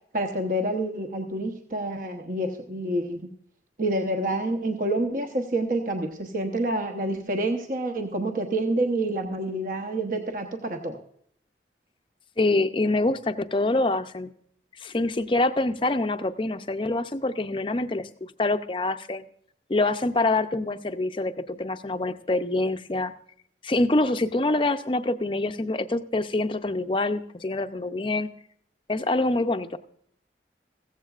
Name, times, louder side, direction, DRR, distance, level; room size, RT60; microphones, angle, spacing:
voice 1, 0.1-3.3 3.8-11.0, right 1 dB, 50° right, 3 dB, 1.0 m, -28 dB
voice 2, 12.4-14.3 14.8-19.2 19.7-23.1 23.6-28.3 28.9-29.8, left 2 dB, 30° left, 10 dB, 0.5 m, -25 dB
15.5 x 15.0 x 2.4 m, 0.65 s
head